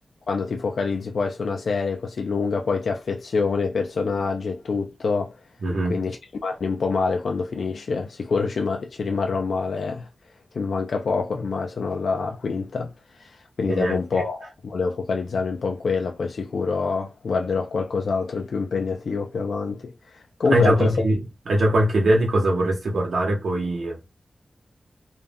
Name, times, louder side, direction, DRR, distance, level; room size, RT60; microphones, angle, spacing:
voice 1, 0.3-5.3 5.9-6.2 6.4-10.1 10.5-12.9 13.2-20.9, left 4 dB, 85° left, 0.3 m, -26 dB
voice 2, 5.6-6.0 13.7-14.2 20.5-24.2, right 1 dB, 85° right, 0.8 m, -22 dB
2.3 x 2.1 x 3.4 m
wide cardioid pair, 130°, 0 cm